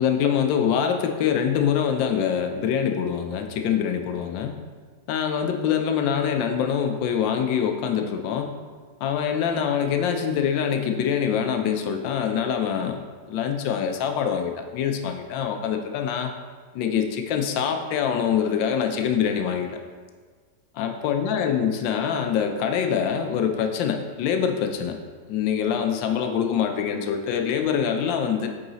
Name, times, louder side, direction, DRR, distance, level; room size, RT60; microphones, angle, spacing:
voice 1, 0.0-4.5 5.1-8.5 9.0-13.0 13.3-16.3 16.7-19.8 20.8-25.0 25.3-28.5, left 8 dB, 90° left, 6 dB, 1.3 m, -24 dB
8.7 x 3.9 x 4.0 m, 1.5 s
omnidirectional pair, 2.0 m